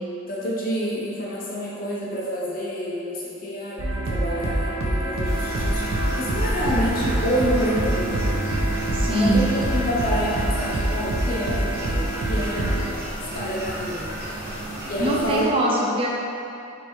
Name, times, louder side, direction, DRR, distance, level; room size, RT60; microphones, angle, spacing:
voice 1, 0.3-8.4 9.0-12.8 13.3-14.1 14.8-15.9, equal, 45° left, -6 dB, 0.8 m, -28 dB
sound 1, 3.8-12.9, right 1 dB, 85° right, 0.6 m, -25 dB
indoors ambient room tone clock ticking distant TV, 5.2-15.4, right 1 dB, 50° right, 1.1 m, -33 dB
voice 2, 8.9-9.6 15.0-16.1, right 1 dB, 25° right, -2 dB, 0.4 m, -23 dB
3.2 x 3.0 x 4.4 m, 2.7 s
head